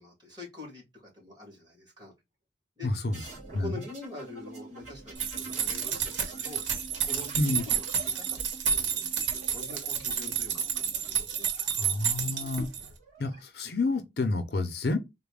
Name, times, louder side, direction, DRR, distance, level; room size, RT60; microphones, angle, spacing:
voice 1, 0.0-2.1 2.8-2.9 3.5-6.6 7.0-11.9, left 2 dB, 25° right, 1.8 m, -45 dB
voice 2, 2.8-3.2 3.5-3.7 7.4-7.6 11.8-12.7 13.2-15.0, left 2 dB, 60° left, 0.6 m, -29 dB
sound 1, 3.1-11.7 12.8-13.4, right 3 dB, 40° right, 1.6 m, -47 dB
sound 2, 5.2-12.9, right 8 dB, 85° right, 1.0 m, -30 dB
4.0 x 2.1 x 3.4 m
head